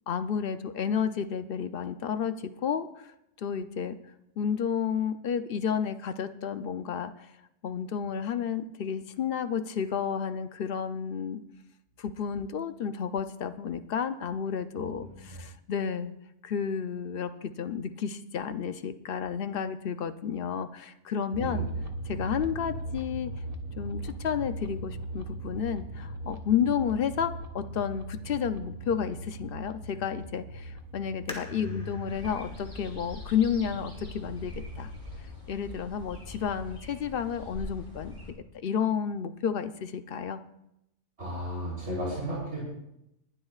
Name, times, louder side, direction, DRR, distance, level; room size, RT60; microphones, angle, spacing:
voice 1, 0.1-3.1 3.4-4.0 4.4-7.3 7.6-11.4 12.0-16.1 16.4-21.7 22.0-23.3 23.8-34.9 35.5-38.1 38.5-40.4, left 7 dB, 55° left, 10 dB, 0.7 m, -31 dB
sound 1, 21.3-35.2, right 1 dB, 30° right, 1.4 m, -39 dB
voice 2, 21.3-21.8 31.5-31.9 41.2-42.6, right 1 dB, 55° right, -6 dB, 3.8 m, -34 dB
sound 2, 31.3-34.6 35.2-35.3 36.0-36.3 36.7-36.8, equal, 5° left, 2.3 m, -48 dB
sound 3, 32.1-38.3, left 2 dB, 40° left, 4.1 m, -44 dB
20.5 x 12.0 x 2.4 m, 0.84 s
omnidirectional pair, 1.4 m